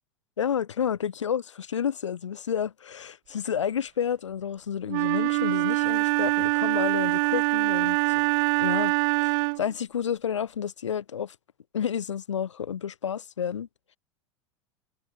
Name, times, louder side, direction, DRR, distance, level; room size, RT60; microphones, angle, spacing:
voice 1, 0.4-8.3 8.6-8.9 9.2-11.4 11.7-13.7, left 8 dB, 75° left, 2.5 m, -30 dB
Wind instrument woodwind instrument, 4.9-9.7, right 31 dB, 50° right, 1.1 m, -24 dB
figure-of-eight pair, 85°, 16 cm